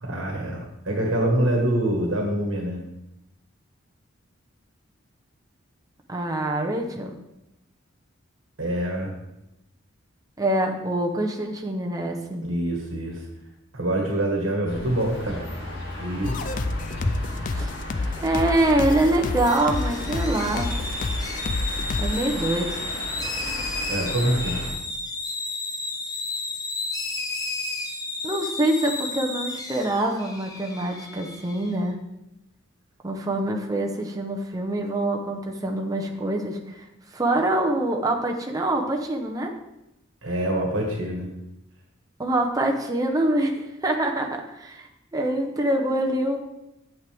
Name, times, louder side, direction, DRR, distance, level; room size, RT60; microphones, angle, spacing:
voice 1, 0.0-2.8 8.6-9.1 12.4-13.2 13.7-15.4 16.0-16.4 23.9-24.7 40.2-41.3, right 1 dB, 70° right, 1 dB, 1.6 m, -25 dB
voice 2, 6.1-7.2 10.4-12.5 17.5-17.7 18.2-20.7 22.0-22.7 28.2-32.0 33.0-36.8 37.1-39.5 42.2-46.4, right 1 dB, 20° right, 2 dB, 0.8 m, -25 dB
sound 1, 14.7-24.7, left 1 dB, 60° left, 2.3 m, -35 dB
sound 2, 16.2-22.2, left 3 dB, 40° left, 0.4 m, -29 dB
sound 3, 19.5-31.7, left 2 dB, 20° left, 1.0 m, -32 dB
8.7 x 7.7 x 3.5 m, 0.89 s
head